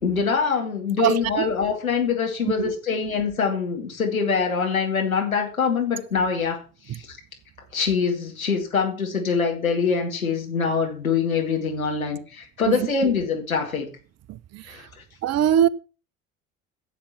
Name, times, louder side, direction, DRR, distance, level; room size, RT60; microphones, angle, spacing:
voice 1, 0.0-7.2 7.7-13.9 14.7-14.9, left 5 dB, 90° left, 2.3 m, -24 dB
voice 2, 1.0-1.5 2.6-2.7 6.9-7.0 12.7-13.1 14.3-14.9 15.2-15.7, right 11 dB, 40° right, 0.8 m, -23 dB
10.0 x 7.4 x 7.1 m
figure-of-eight pair, 65°, 40 cm